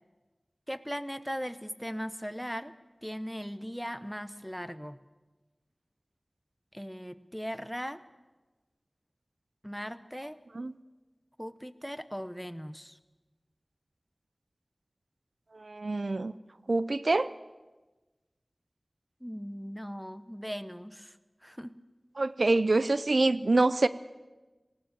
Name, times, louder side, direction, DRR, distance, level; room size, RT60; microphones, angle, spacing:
voice 1, 0.7-2.7 3.0-5.0 6.7-8.0 9.6-10.4 11.4-13.0 19.2-21.2 21.4-21.7, equal, ahead, 0.9 m, -38 dB
voice 2, 15.5-16.3 16.7-17.3 22.2-23.9, right 2 dB, 75° right, 0.5 m, -26 dB
19.0 x 18.0 x 7.7 m
wide cardioid pair, 45°, 0 cm